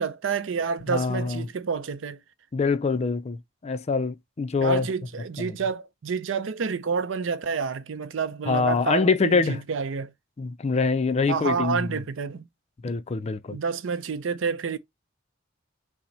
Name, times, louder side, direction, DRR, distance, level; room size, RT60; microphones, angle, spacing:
voice 1, 0.0-2.2 4.6-10.1 11.3-12.5 13.5-14.8, right 5 dB, 75° right, 0.5 m, -29 dB
voice 2, 0.9-1.5 2.5-4.9 5.4-5.6 8.5-9.6 10.4-12.0 12.8-13.6, left 4 dB, 35° left, 0.4 m, -25 dB
5.8 x 2.1 x 4.1 m
head